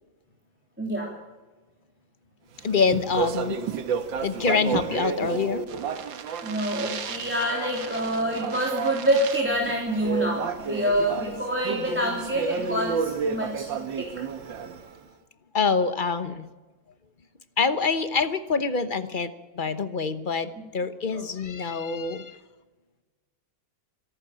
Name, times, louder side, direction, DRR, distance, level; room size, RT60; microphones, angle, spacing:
voice 1, 0.8-1.1 6.4-14.1 21.1-21.2, right 1 dB, 5° right, -1 dB, 3.0 m, -26 dB
voice 2, 2.6-3.6 4.2-5.6 15.5-16.5 17.6-22.4, left 5 dB, 35° left, 11 dB, 0.9 m, -26 dB
Speech, 2.6-15.0, right 6 dB, 90° right, 2.0 m, -31 dB
24.5 x 12.0 x 8.7 m, 1.2 s
omnidirectional pair, 2.0 m